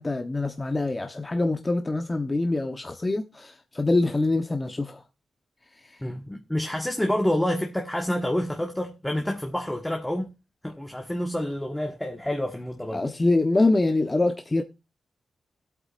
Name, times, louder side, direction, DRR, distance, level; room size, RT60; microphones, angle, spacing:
voice 1, 0.0-5.0 12.9-14.6, left 2 dB, 25° left, 1.0 m, -24 dB
voice 2, 6.0-10.3 10.6-13.0, left 1 dB, 10° left, 1.4 m, -28 dB
20.5 x 8.5 x 2.5 m
cardioid pair, 80°, 0 cm